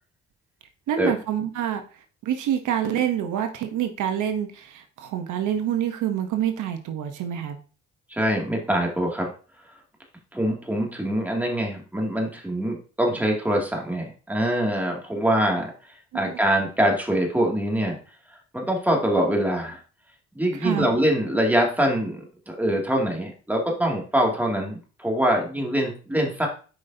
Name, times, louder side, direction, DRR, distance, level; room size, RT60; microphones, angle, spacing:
voice 1, 0.9-1.8 2.2-7.6 16.1-16.2 20.6-20.9, right 10 dB, 80° right, 6 dB, 1.0 m, -26 dB
voice 2, 8.1-9.3 10.3-15.7 16.1-18.0 18.5-19.8 20.3-26.5, right 1 dB, 5° right, 0 dB, 2.3 m, -24 dB
8.3 x 5.2 x 2.7 m, 0.37 s
cardioid pair, 90°, 30 cm